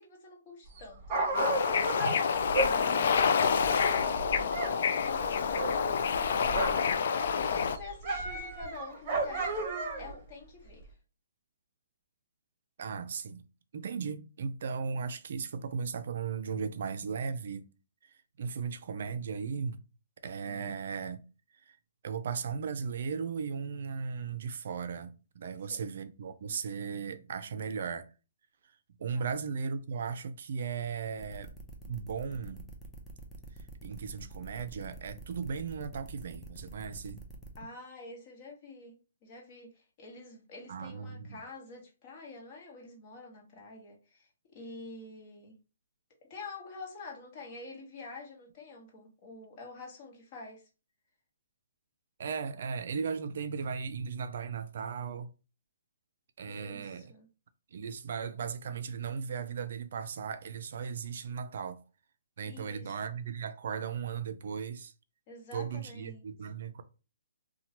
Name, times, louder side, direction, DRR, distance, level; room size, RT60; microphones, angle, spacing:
voice 1, 0.0-1.5 2.4-5.7 6.3-9.6 9.9-10.9 25.4-25.8 29.1-29.3 37.6-39.0 39.2-45.5 46.3-50.6 56.5-57.3 62.4-63.0 65.3-66.2, left 3 dB, 35° left, 1.1 m, -47 dB
Dog, 0.7-4.8 5.0-6.9 7.2-10.2 10.8-10.9, right 2 dB, 30° right, 0.9 m, -34 dB
Bird / Ocean, 1.3-7.8, left 6 dB, 55° left, 0.3 m, -28 dB
voice 2, 12.8-13.4 13.7-17.6 18.4-19.8 20.2-21.2 21.7-21.8 22.0-28.0 29.0-31.5 31.9-32.7 33.8-37.2 40.7-41.4 52.2-55.3 56.4-57.1 57.7-61.8 62.4-64.9 65.5-66.8, right 6 dB, 60° right, 0.4 m, -36 dB
sound 1, 31.2-37.6, right 2 dB, 5° left, 0.5 m, -48 dB
2.8 x 2.2 x 2.8 m
hypercardioid pair, 150°, 0 cm